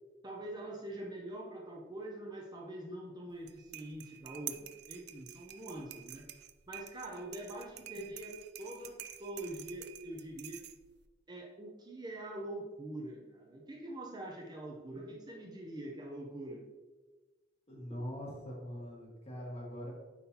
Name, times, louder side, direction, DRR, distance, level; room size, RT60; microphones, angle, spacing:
voice 1, 0.2-6.3 6.7-10.6 11.3-16.6, right 1 dB, 20° right, -1 dB, 0.6 m, -44 dB
sound 1, 3.3-11.0, right 13 dB, 60° right, 0.4 m, -49 dB
voice 2, 17.7-19.9, equal, 35° left, -3 dB, 1.7 m, -42 dB
9.3 x 3.8 x 2.8 m, 1.2 s
head